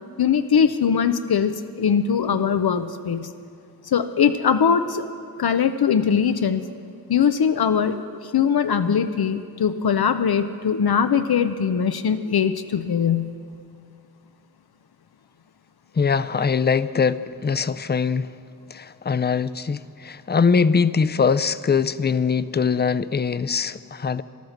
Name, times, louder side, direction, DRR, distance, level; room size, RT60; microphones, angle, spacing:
voice 1, 0.2-3.3 3.9-5.1 5.4-6.7 7.1-13.3, left 7 dB, 85° left, 9 dB, 0.5 m, -21 dB
voice 2, 16.0-18.3 18.7-24.2, left 5 dB, 30° left, 14 dB, 0.4 m, -22 dB
13.5 x 12.0 x 6.4 m, 2.3 s
wide cardioid pair, 50°, 36 cm